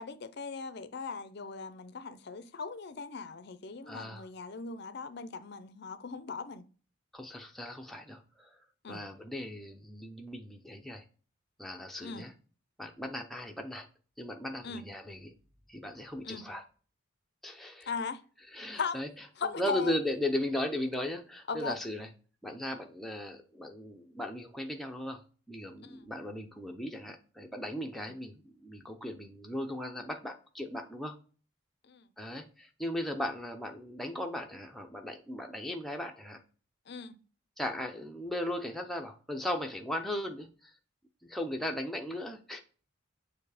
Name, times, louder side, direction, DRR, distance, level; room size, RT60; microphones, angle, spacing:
voice 1, 0.0-6.6 8.8-9.0 12.0-12.3 14.6-14.8 16.2-16.4 17.9-18.2 18.7-19.0 19.4-20.0 21.5-21.8 25.8-26.0 31.8-32.0 36.9-37.2, left 5 dB, 50° left, 0.5 m, -39 dB
voice 2, 3.9-4.3 7.1-8.6 8.9-11.0 11.6-12.3 12.8-13.9 14.2-15.3 15.7-16.6 17.4-17.9 18.5-19.1 19.4-22.1 22.4-25.2 25.5-31.1 32.2-36.4 37.6-40.7 41.2-42.6, left 1 dB, ahead, 0.5 m, -37 dB
7.0 x 2.7 x 4.8 m
head